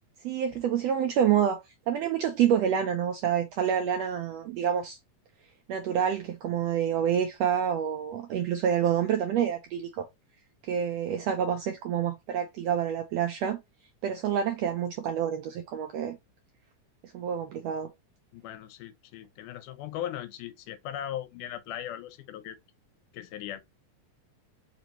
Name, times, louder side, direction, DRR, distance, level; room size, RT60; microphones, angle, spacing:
voice 1, 0.2-1.6 1.9-5.0 5.7-10.1 10.6-13.6 14.0-16.2 17.1-17.9, right 9 dB, 80° right, 1.5 m, -27 dB
voice 2, 18.3-22.6 23.1-23.6, left 11 dB, 90° left, 2.2 m, -38 dB
5.0 x 2.9 x 2.9 m
omnidirectional pair, 3.6 m